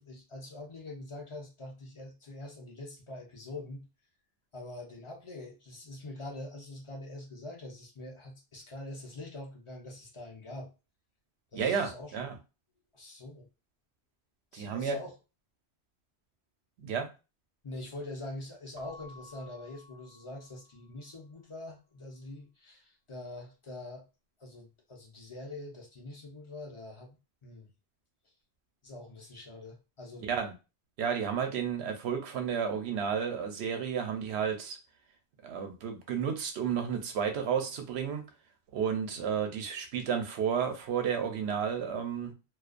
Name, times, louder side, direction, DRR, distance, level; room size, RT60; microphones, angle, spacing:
voice 1, 0.0-3.8 4.5-10.7 11.5-12.1 12.9-13.5 14.5-15.1 17.6-24.0 24.4-27.2 27.4-27.7 28.8-30.3, left 2 dB, 35° left, 0 dB, 0.5 m, -44 dB
voice 2, 11.5-12.4 14.5-15.0 16.8-17.1 30.2-30.5 31.0-34.8 35.4-38.2 38.7-42.3, right 7 dB, 80° right, 6 dB, 0.8 m, -32 dB
Keyboard (musical) / Bell, 18.7-21.2, left 2 dB, 55° right, 0.6 m, -54 dB
2.3 x 2.1 x 2.4 m, 0.30 s
omnidirectional pair, 1.1 m